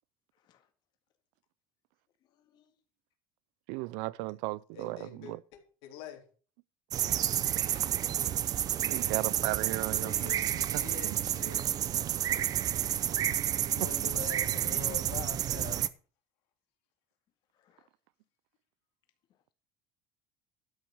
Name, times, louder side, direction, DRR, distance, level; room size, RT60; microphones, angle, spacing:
voice 1, 0.4-0.7 2.2-2.7 7.7-7.9 17.5-17.9 19.3-19.5, left 10 dB, 45° left, 2.0 m, -65 dB
voice 2, 3.7-5.4 8.9-10.3, right 20 dB, 80° right, 0.5 m, -35 dB
voice 3, 4.7-6.2 10.0-11.6 13.7-15.8, left 10 dB, 75° left, 3.4 m, -45 dB
sound 1, 6.9-15.9, right 11 dB, 40° right, 0.7 m, -30 dB
12.5 x 6.2 x 6.6 m
cardioid pair, 140°, 10 cm